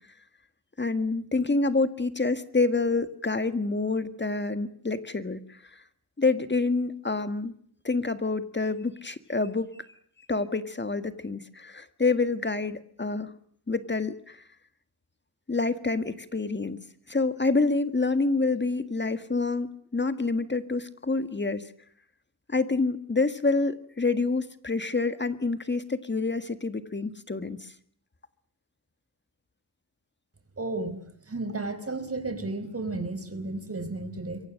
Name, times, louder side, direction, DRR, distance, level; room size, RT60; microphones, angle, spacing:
voice 1, 0.8-5.8 6.2-7.5 7.8-9.8 10.3-13.3 13.7-14.4 15.5-21.7 22.5-27.7, left 3 dB, 30° left, 11 dB, 1.7 m, -27 dB
voice 2, 30.6-31.0 31.3-34.4, right 2 dB, 35° right, 10 dB, 4.9 m, -33 dB
27.5 x 24.0 x 6.5 m, 0.62 s
wide cardioid pair, 100°, 38 cm